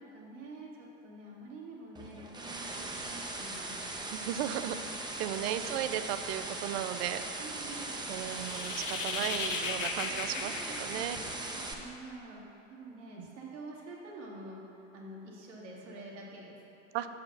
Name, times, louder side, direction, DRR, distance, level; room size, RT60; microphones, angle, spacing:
voice 1, 0.0-4.0 5.5-5.8 7.4-7.9 10.1-14.6 14.9-16.6, right 2 dB, 70° right, -4 dB, 1.8 m, -47 dB
sound 1, 1.9-11.7, right 2 dB, 10° right, 0.7 m, -39 dB
voice 2, 4.1-4.8 5.2-7.2 8.1-11.2 13.2-13.3 16.9-17.1, right 11 dB, 55° right, 11 dB, 0.5 m, -35 dB
sound 2, 8.1-11.7, left 5 dB, 80° left, 0.8 m, -37 dB
7.2 x 4.9 x 5.8 m, 2.8 s
figure-of-eight pair, 80°, 38 cm